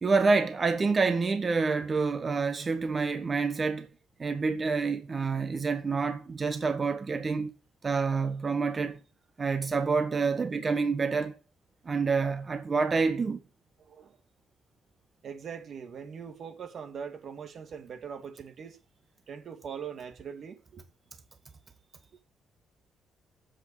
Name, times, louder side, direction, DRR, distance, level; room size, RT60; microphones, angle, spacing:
voice 1, 0.0-3.9 4.2-7.5 7.8-9.0 9.4-11.4 11.8-13.4, right 4 dB, 35° right, 1.3 m, -27 dB
voice 2, 13.8-14.2 15.2-18.8 19.3-20.8, right 7 dB, 55° right, 2.4 m, -41 dB
8.0 x 7.8 x 8.8 m
cardioid pair, 90°, 0 cm